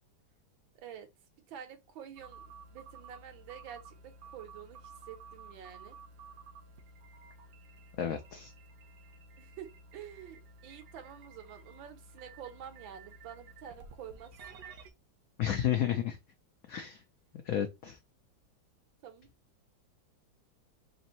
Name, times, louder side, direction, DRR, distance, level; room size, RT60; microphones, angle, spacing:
voice 1, 0.7-1.1 1.5-6.0 9.4-14.6 19.0-19.3, right 9 dB, 85° right, 1.6 m, -48 dB
sound 1, 2.2-14.9, right 3 dB, 65° right, 0.9 m, -53 dB
voice 2, 8.0-8.5 15.4-16.2 16.7-17.0 17.4-18.0, left 10 dB, 85° left, 0.7 m, -31 dB
3.7 x 2.6 x 4.1 m
omnidirectional pair, 2.1 m